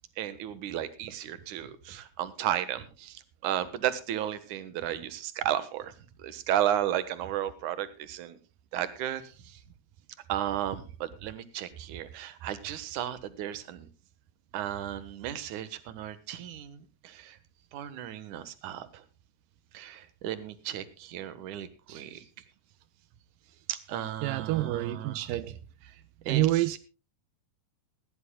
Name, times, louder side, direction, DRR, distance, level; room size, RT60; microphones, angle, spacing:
voice 1, 0.2-5.9 6.2-8.4 8.7-9.6 10.3-13.9 14.5-17.4 17.7-19.0 19.7-22.3 23.7-25.3 25.8-26.0 26.3-26.8, right 11 dB, 60° right, 2.3 m, -34 dB
voice 2, 24.2-25.6 26.3-26.8, right 15 dB, 85° right, 1.9 m, -28 dB
19.0 x 17.0 x 2.3 m
omnidirectional pair, 4.9 m